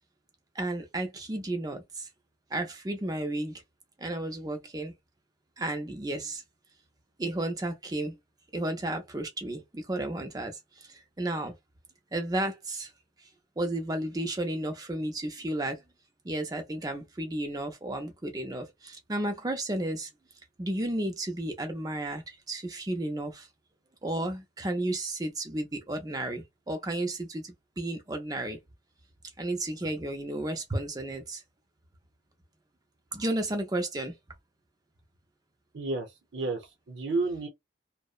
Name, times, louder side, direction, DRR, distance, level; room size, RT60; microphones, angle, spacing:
voice 1, 0.5-2.1 2.5-3.6 4.0-4.9 5.6-6.4 7.2-8.2 8.5-11.6 12.1-12.9 13.2-13.3 13.6-15.8 16.2-20.1 20.6-23.5 24.0-28.6 29.4-31.4 33.1-34.2, right 1 dB, 20° right, 0.4 m, -33 dB
voice 2, 35.7-36.1 36.3-37.5, right 3 dB, 85° right, 0.6 m, -31 dB
2.7 x 2.0 x 2.4 m
head